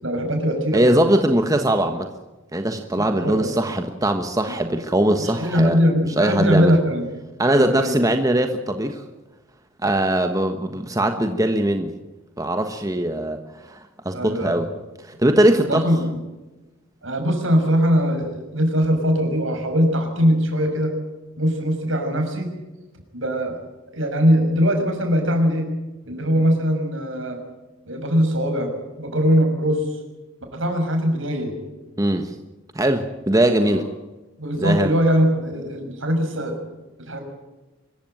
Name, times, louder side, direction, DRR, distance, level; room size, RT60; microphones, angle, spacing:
voice 1, 0.0-0.9 3.0-3.6 4.5-4.6 5.2-7.1 7.4-7.9 10.7-10.8 14.1-14.6 15.7-16.2 17.0-20.9 21.4-22.5 23.1-23.6 23.9-25.7 26.0-27.4 27.8-28.7 29.0-30.0 30.5-31.5 31.9-32.0 33.6-33.8 34.4-36.6 37.0-37.2, equal, 70° right, 5 dB, 6.3 m, -21 dB
voice 2, 0.7-2.1 2.5-5.8 6.2-6.7 7.4-9.0 9.8-11.9 12.4-14.7 15.0-15.9 32.0-32.3 32.7-33.9 34.6-34.9, right 1 dB, 15° right, 6 dB, 1.2 m, -21 dB
25.0 x 15.0 x 9.0 m, 1.1 s
head